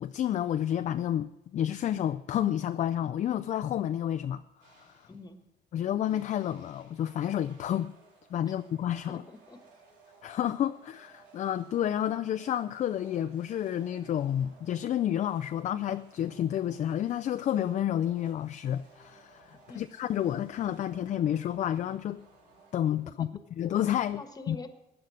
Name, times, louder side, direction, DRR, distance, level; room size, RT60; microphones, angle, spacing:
voice 1, 0.0-4.9 5.7-7.9 8.3-9.2 10.2-22.2 22.7-23.3 23.6-24.2 24.5-24.6, left 11 dB, 45° left, 0.4 m, -30 dB
sound 1, 4.6-5.3 6.0-23.4, right 4 dB, 80° right, 4.2 m, -59 dB
voice 2, 5.1-5.4 8.4-8.5 9.1-9.6 19.7-19.8 23.1-23.3 24.2-24.7, left 2 dB, 20° left, 1.4 m, -45 dB
15.5 x 10.0 x 6.4 m
cardioid pair, 110°, 17 cm